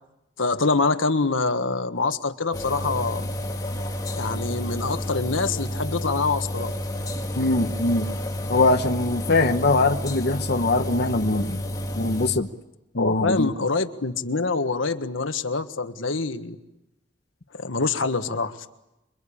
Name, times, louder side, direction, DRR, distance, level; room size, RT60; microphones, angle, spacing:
voice 1, 0.4-3.3 4.2-6.7 12.9-16.6 17.5-18.6, left 3 dB, 90° left, 9 dB, 1.5 m, -25 dB
sound 1, 2.5-12.3, equal, 20° left, 2.4 m, -30 dB
voice 2, 7.4-8.1 8.5-11.6 11.9-12.5 12.9-13.5, left 2 dB, 55° left, 6 dB, 1.1 m, -22 dB
27.0 x 23.5 x 8.7 m, 0.94 s
head